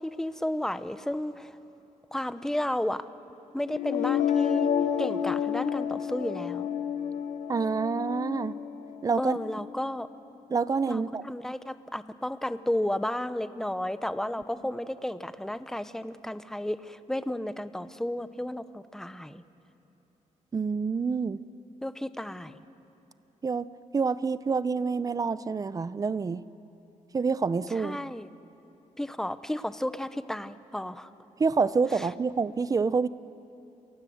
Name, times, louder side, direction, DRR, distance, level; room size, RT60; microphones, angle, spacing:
voice 1, 0.0-1.6 2.1-3.0 3.5-6.7 9.2-10.1 10.9-19.4 21.8-22.6 27.7-28.3 29.0-31.1 31.9-32.1, left 1 dB, 5° left, 12 dB, 0.8 m, -33 dB
sound 1, 3.7-9.6, left 8 dB, 70° left, 1.3 m, -30 dB
voice 2, 7.5-8.6 9.0-9.4 10.5-11.2 20.5-21.4 23.4-26.4 27.1-28.0 31.4-33.1, right 5 dB, 25° right, 16 dB, 0.6 m, -27 dB
28.0 x 23.0 x 7.9 m, 3.0 s
cardioid pair, 135°, 13 cm